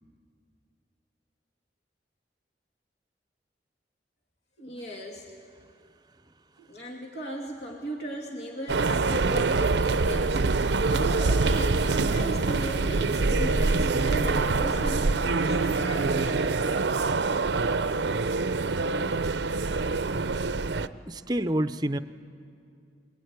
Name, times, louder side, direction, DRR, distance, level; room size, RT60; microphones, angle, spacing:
voice 1, 4.6-5.3 6.6-16.5, right 1 dB, 70° left, 0 dB, 2.5 m, -37 dB
sound 1, 8.7-20.9, right 3 dB, 75° right, 0.6 m, -25 dB
voice 2, 21.1-22.0, right 1 dB, 25° right, 11 dB, 0.6 m, -28 dB
22.5 x 22.5 x 9.5 m, 2.4 s
head